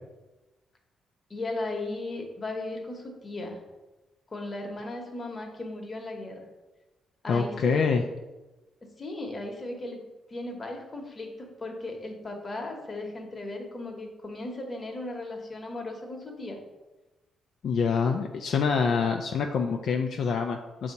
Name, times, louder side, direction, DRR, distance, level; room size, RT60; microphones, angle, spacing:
voice 1, 1.3-3.6 4.3-6.5 7.2-7.9 8.8-10.0 10.3-16.6, left 2 dB, 25° left, 2 dB, 1.0 m, -36 dB
voice 2, 7.3-8.0 17.6-20.9, left 5 dB, 60° left, 3 dB, 0.4 m, -26 dB
6.9 x 2.8 x 5.2 m, 1.1 s
cardioid pair, 125°, 0 cm